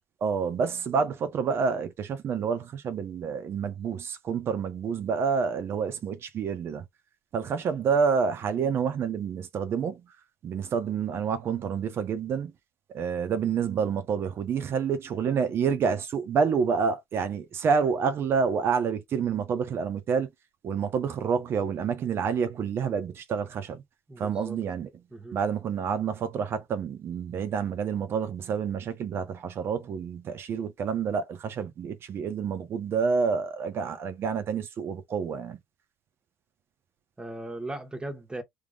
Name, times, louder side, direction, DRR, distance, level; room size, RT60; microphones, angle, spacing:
voice 1, 0.2-6.8 7.3-10.0 10.4-12.5 12.9-20.3 20.6-23.8 24.2-24.9 25.3-35.6, right 6 dB, 50° right, 1.0 m, -28 dB
voice 2, 24.1-24.6 25.1-25.4 37.2-38.4, right 2 dB, 15° right, 1.4 m, -37 dB
3.5 x 3.3 x 2.4 m
supercardioid pair, 75°, 5 cm